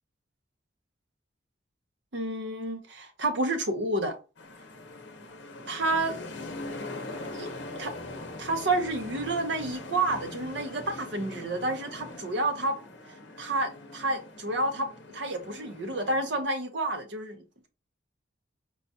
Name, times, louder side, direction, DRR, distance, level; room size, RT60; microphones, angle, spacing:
voice 1, 2.1-4.2 5.7-6.2 7.3-7.5 7.8-7.9 8.4-12.8 13.4-17.7, right 2 dB, 65° right, 0.7 m, -30 dB
sound 1, 4.4-16.4, left 2 dB, 65° left, 0.7 m, -42 dB
4.7 x 2.2 x 2.6 m
head